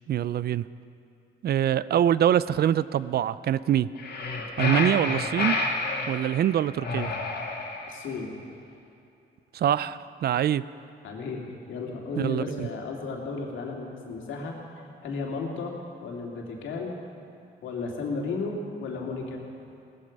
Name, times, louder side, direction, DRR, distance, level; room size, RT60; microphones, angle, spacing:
voice 1, 0.1-0.6 1.4-3.9 4.6-5.6 6.1-7.1 9.5-10.6 12.2-12.7, right 10 dB, 55° right, 17 dB, 0.4 m, -24 dB
sound 1, 4.0-6.1 6.8-8.0, left 3 dB, 55° left, 2.4 m, -29 dB
voice 2, 7.9-8.3 11.0-14.5 15.0-15.7 16.0-16.9 17.6-19.4, left 3 dB, 75° left, -1 dB, 2.8 m, -34 dB
17.5 x 14.5 x 5.3 m, 2.6 s
cardioid pair, 90°, 20 cm